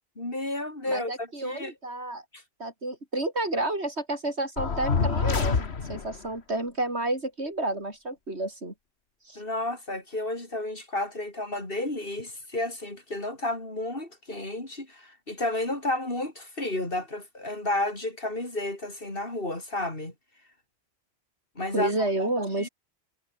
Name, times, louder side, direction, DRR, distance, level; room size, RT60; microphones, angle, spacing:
voice 1, 0.2-1.7 2.3-2.4 9.3-20.1 21.5-22.1 22.6-22.7, left 1 dB, 60° left, 5.2 m, -32 dB
voice 2, 0.9-2.2 2.6-8.7 9.3-9.4 21.7-22.7, right 2 dB, 90° right, 6.1 m, -30 dB
sound 1, 4.6-6.2, left 5 dB, 75° left, 1.9 m, -26 dB
omnidirectional pair, 1.1 m